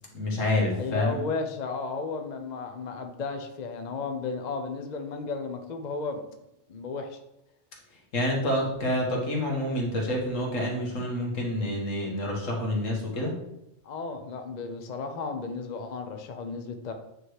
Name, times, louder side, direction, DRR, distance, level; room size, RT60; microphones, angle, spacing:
voice 1, 0.1-1.2 8.1-13.3, left 1 dB, 80° left, -1 dB, 2.0 m, -28 dB
voice 2, 0.7-6.2 6.7-7.2 13.8-16.9, left 4 dB, 45° left, 6 dB, 0.7 m, -34 dB
8.7 x 3.3 x 4.7 m, 0.84 s
omnidirectional pair, 1.3 m